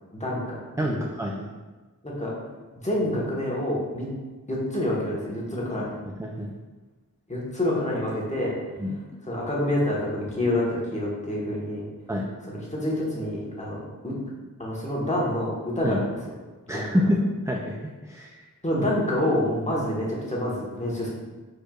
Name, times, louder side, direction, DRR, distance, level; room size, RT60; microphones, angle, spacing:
voice 1, 0.2-0.9 2.0-2.3 2.8-4.1 4.5-5.9 7.3-8.6 9.3-11.8 12.5-14.1 14.6-16.0 16.7-16.9 18.6-21.1, left 1 dB, 20° left, -5 dB, 1.3 m, -27 dB
voice 2, 0.8-1.5 5.8-5.9 6.2-6.5 8.8-9.0 10.4-10.5 12.1-12.3 15.8-16.0 16.7-17.2 17.5-18.4, equal, 10° right, 0 dB, 0.3 m, -27 dB
4.8 x 4.4 x 2.4 m, 1.3 s
wide cardioid pair, 60°, 35 cm